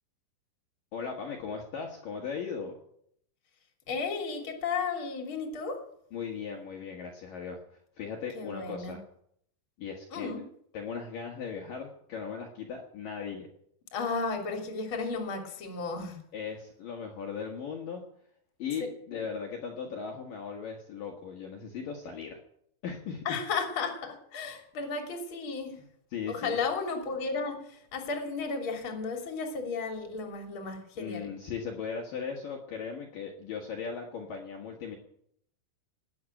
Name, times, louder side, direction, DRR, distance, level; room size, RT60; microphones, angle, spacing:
voice 1, 0.9-2.7 6.1-7.6 8.0-9.0 9.8-10.3 10.7-13.5 16.3-18.0 18.6-22.4 22.8-23.2 26.1-26.6 31.0-35.0, left 6 dB, 60° left, 0 dB, 3.1 m, -38 dB
voice 2, 3.9-5.8 8.3-9.0 10.1-10.4 13.9-16.2 19.1-19.2 23.2-25.7 26.3-31.3, left 4 dB, 35° left, 3 dB, 3.1 m, -34 dB
19.0 x 8.0 x 9.0 m, 0.71 s
omnidirectional pair, 5.0 m